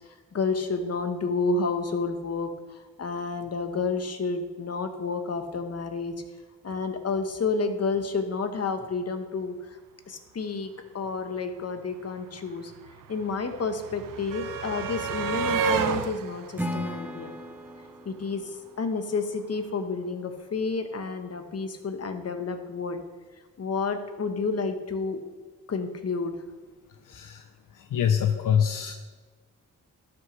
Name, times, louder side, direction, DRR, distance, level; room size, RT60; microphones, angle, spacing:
voice 1, 0.3-6.2 6.6-9.6 10.1-12.7 13.1-17.3 18.0-23.0 23.6-25.2 25.7-26.4 28.3-28.4, left 4 dB, 50° left, 7 dB, 1.0 m, -30 dB
sound 1, 11.5-11.6 11.8-18.0 19.2-19.3 19.6-19.7, right 6 dB, 80° right, 0.6 m, -32 dB
Acoustic guitar / Strum, 16.5-19.7, equal, 5° right, 0.9 m, -37 dB
voice 2, 27.0-27.4 27.7-28.9, left 8 dB, 75° left, 8 dB, 0.5 m, -25 dB
12.5 x 6.1 x 3.1 m, 1.3 s
cardioid pair, 65°, 32 cm